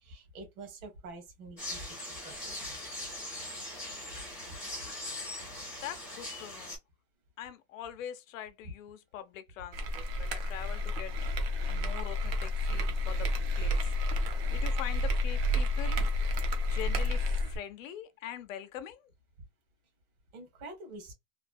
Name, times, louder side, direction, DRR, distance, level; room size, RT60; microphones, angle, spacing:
voice 1, 0.0-2.8 4.1-4.2 4.5-4.6 20.3-21.1, right 2 dB, 60° right, 1.4 m, -47 dB
sound 1, 1.6-6.8, left 1 dB, 5° right, 0.5 m, -41 dB
voice 2, 5.8-6.8 7.4-11.1 11.7-13.3 13.6-13.8 14.5-16.0 16.7-19.1, left 10 dB, 55° left, 0.5 m, -43 dB
sound 2, 9.7-17.6, left 1 dB, 40° right, 0.6 m, -30 dB
3.2 x 2.2 x 2.5 m
supercardioid pair, 165°, 48 cm